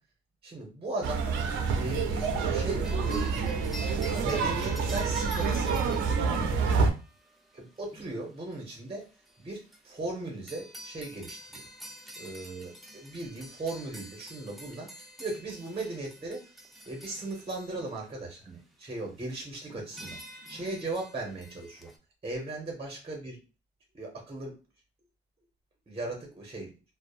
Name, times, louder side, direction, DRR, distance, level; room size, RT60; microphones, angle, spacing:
voice 1, 0.4-3.6 3.9-6.4 7.5-9.0 9.4-11.6 12.2-16.4 16.9-20.2 20.5-21.9 22.2-23.4 23.9-24.5 25.9-26.7, right 2 dB, 25° right, 0 dB, 0.8 m, -38 dB
sound 1, 1.0-6.9, right 5 dB, 85° right, 0.5 m, -27 dB
sound 2, 2.8-18.1 19.3-19.4 19.7-22.0, equal, ahead, 0.5 m, -48 dB
2.6 x 2.0 x 2.4 m, 0.31 s
cardioid pair, 90°, 20 cm